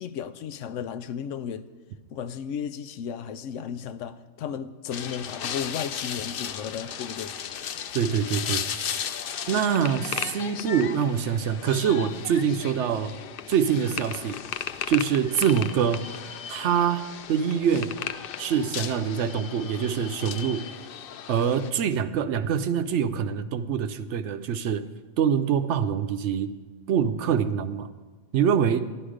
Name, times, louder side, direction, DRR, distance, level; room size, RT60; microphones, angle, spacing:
voice 1, 0.0-1.7 2.1-7.3, left 8 dB, 85° left, 0.9 m, -34 dB
sound 1, 4.9-21.7, left 8 dB, 60° left, 0.6 m, -35 dB
voice 2, 7.9-8.9 9.5-13.1 13.5-14.4 14.9-16.1 16.5-18.0 18.4-20.7 21.3-24.8 25.2-26.5 26.9-27.9 28.3-28.9, right 7 dB, 75° right, 0.9 m, -25 dB
12.0 x 12.0 x 5.0 m
omnidirectional pair, 1.3 m